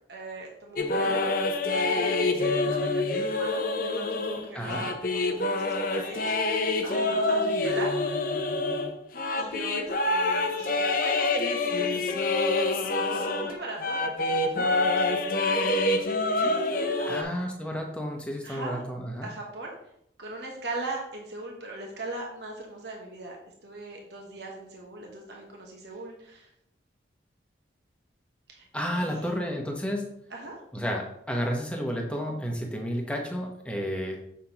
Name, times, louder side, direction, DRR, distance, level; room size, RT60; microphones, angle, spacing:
voice 1, 0.1-1.3 1.7-7.9 9.4-17.5 18.4-18.8 19.2-19.7 20.2-23.4 23.6-26.5 28.5-28.7 29.0-29.3 30.3-30.6, right 2 dB, 65° right, 0 dB, 1.2 m, -40 dB
sound 1, 0.8-13.5 13.8-17.2, left 2 dB, 45° left, 0.7 m, -26 dB
voice 2, 4.5-4.9 17.1-19.3 28.7-30.1 30.7-34.2, equal, 5° left, 0 dB, 1.0 m, -31 dB
7.1 x 5.9 x 3.0 m, 0.74 s
head